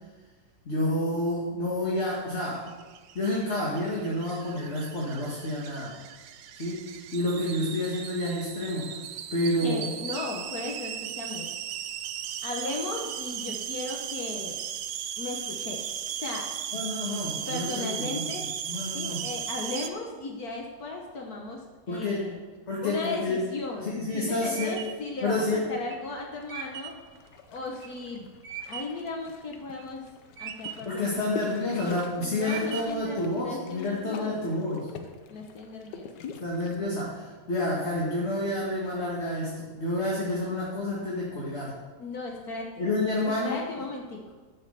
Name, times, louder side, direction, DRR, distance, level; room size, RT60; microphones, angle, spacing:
voice 1, 0.7-2.7 3.1-6.0 6.6-9.0 9.3-9.8 16.7-19.2 21.9-22.3 22.7-23.4 23.8-24.7 25.2-25.6 30.9-34.9 36.4-41.7 42.8-43.6, left 1 dB, 40° left, -5 dB, 2.2 m, -29 dB
sound 1, 2.6-19.9, right 9 dB, 80° right, 1.3 m, -37 dB
voice 2, 9.6-11.8 12.4-14.6 15.2-15.9 16.2-16.5 17.5-18.5 18.9-22.4 22.8-28.3 28.7-30.0 30.4-31.8 32.2-34.6 35.3-36.1 42.0-42.9 43.2-44.2, left 3 dB, 65° left, 0 dB, 1.6 m, -36 dB
sound 2, 23.6-29.1 29.5-30.1 30.4-31.0 31.5-32.0 32.4-33.1, right 9 dB, 55° right, 1.0 m, -40 dB
sound 3, 26.5-36.8, left 6 dB, 90° left, 1.5 m, -44 dB
12.0 x 6.5 x 6.7 m, 1.3 s
omnidirectional pair, 1.8 m